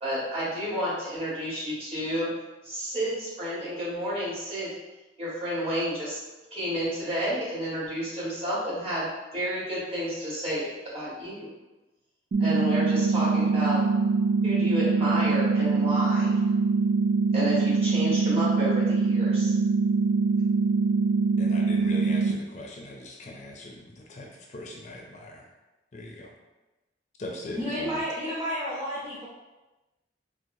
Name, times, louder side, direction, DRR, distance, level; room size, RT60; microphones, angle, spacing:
voice 1, 0.0-2.3 2.6-4.7 5.2-6.2 6.5-9.1 9.3-11.5 12.4-13.8 14.4-16.3 17.3-19.5, equal, 35° right, -9 dB, 1.5 m, -30 dB
sound 1, 12.3-22.3, right 4 dB, 65° right, 0.5 m, -23 dB
voice 2, 21.4-25.5 25.9-26.3 27.2-27.9, left 1 dB, 40° left, 0 dB, 0.4 m, -40 dB
voice 3, 27.6-29.3, equal, 10° right, -11 dB, 0.6 m, -31 dB
4.4 x 2.0 x 2.6 m, 1.1 s
head